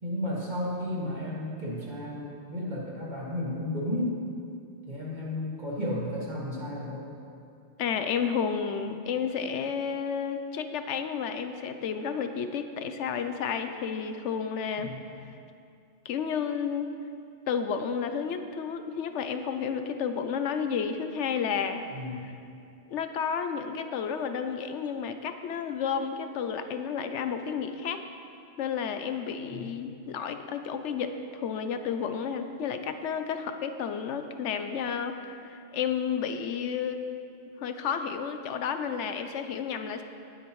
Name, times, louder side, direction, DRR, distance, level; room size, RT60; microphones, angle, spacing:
voice 1, 0.0-4.2 4.9-7.1 14.8-15.0 21.9-22.3 29.5-29.7, left 1 dB, 40° right, -6 dB, 2.3 m, -33 dB
voice 2, 7.8-14.9 16.0-16.9 17.5-21.8 22.9-28.0 28.6-37.0 37.6-40.0, left 7 dB, 85° left, 8 dB, 1.0 m, -31 dB
19.0 x 7.7 x 3.2 m, 2.5 s
omnidirectional pair, 1.2 m